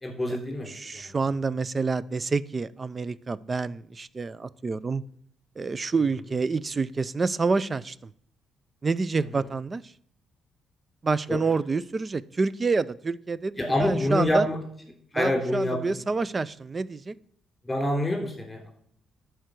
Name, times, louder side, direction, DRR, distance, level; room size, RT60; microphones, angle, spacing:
voice 1, 0.0-1.1 11.3-11.4 13.6-14.6 15.1-15.8 17.6-18.7, left 1 dB, 15° left, 0 dB, 3.3 m, -26 dB
voice 2, 0.7-5.0 5.6-8.0 8.8-9.8 11.0-14.5 15.1-17.1, right 4 dB, 30° right, 19 dB, 0.4 m, -28 dB
11.0 x 4.6 x 6.2 m, 0.65 s
cardioid pair, 90°, 0 cm